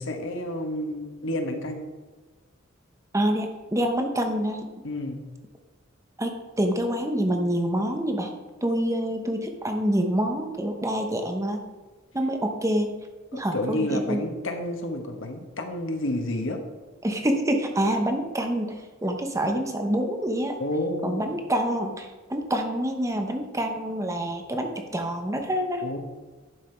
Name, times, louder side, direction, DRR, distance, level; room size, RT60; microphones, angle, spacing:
voice 1, 0.0-1.8 4.8-5.2 13.5-16.6 20.6-21.3 25.8-26.0, left 1 dB, 70° left, 5 dB, 1.3 m, -30 dB
voice 2, 3.1-4.7 6.2-8.3 8.6-11.6 12.1-12.9 13.3-14.2 17.0-20.6 21.0-25.9, right 1 dB, 15° right, 4 dB, 1.0 m, -26 dB
11.0 x 5.7 x 4.5 m, 1.3 s
head